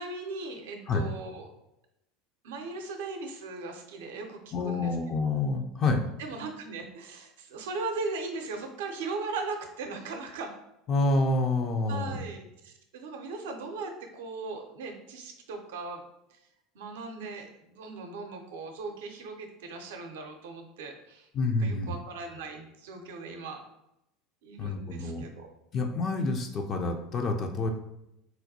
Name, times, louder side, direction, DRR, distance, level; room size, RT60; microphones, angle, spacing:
voice 1, 0.0-1.5 2.4-5.0 6.2-10.5 11.9-16.0 16.3-16.4 16.7-21.3 21.6-23.6 24.4-25.5, right 3 dB, 70° right, 4 dB, 0.5 m, -38 dB
voice 2, 4.5-6.0 10.9-12.2 21.3-22.0 24.6-25.3 25.7-27.7, left 3 dB, 40° left, 4 dB, 0.4 m, -28 dB
4.2 x 2.2 x 2.6 m, 0.86 s
figure-of-eight pair, 75°, 0 cm